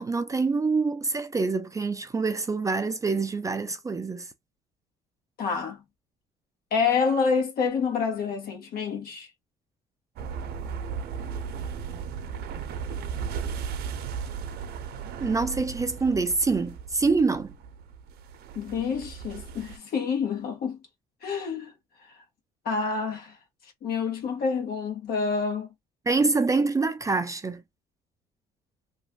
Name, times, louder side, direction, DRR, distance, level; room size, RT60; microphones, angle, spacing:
voice 1, 0.0-4.3 15.2-17.5 26.1-27.6, right 4 dB, 20° right, 0.4 m, -25 dB
voice 2, 5.4-5.8 6.7-9.3 18.5-20.8 21.2-21.7 22.6-23.3 23.8-25.7, left 5 dB, 65° left, 1.5 m, -27 dB
sound 1, 10.2-19.8, right 6 dB, 70° right, 0.7 m, -36 dB
3.0 x 2.5 x 2.4 m
cardioid pair, 110°, 17 cm